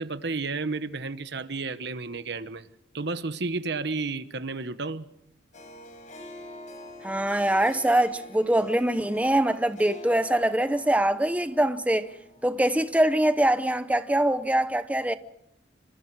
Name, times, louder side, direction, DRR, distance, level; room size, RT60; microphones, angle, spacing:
voice 1, 0.0-2.7 2.9-5.1, right 3 dB, 65° right, 1.2 m, -32 dB
Harp, 5.5-13.0, left 1 dB, 45° left, 5.9 m, -46 dB
voice 2, 7.0-12.1 12.4-15.1, right 1 dB, 10° right, 0.8 m, -23 dB
27.5 x 25.5 x 4.8 m
head